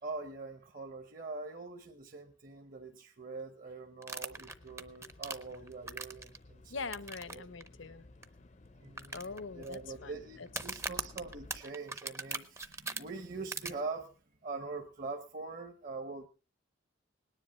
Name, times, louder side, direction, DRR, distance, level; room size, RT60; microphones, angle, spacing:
voice 1, 0.0-6.9 7.3-7.5 8.8-14.1 14.4-16.3, right 3 dB, 40° right, 1.0 m, -43 dB
sound 1, 4.0-6.4 6.9-7.3 7.6-7.7 8.2-8.3 9.0-9.7 10.5-13.0 13.5-13.7, right 3 dB, 15° right, 0.6 m, -39 dB
sound 2, 4.3-11.6, left 2 dB, 35° left, 0.6 m, -56 dB
voice 2, 6.7-8.0 9.1-10.1 10.4-10.5, left 4 dB, 65° left, 0.8 m, -42 dB
19.0 x 10.0 x 4.3 m
head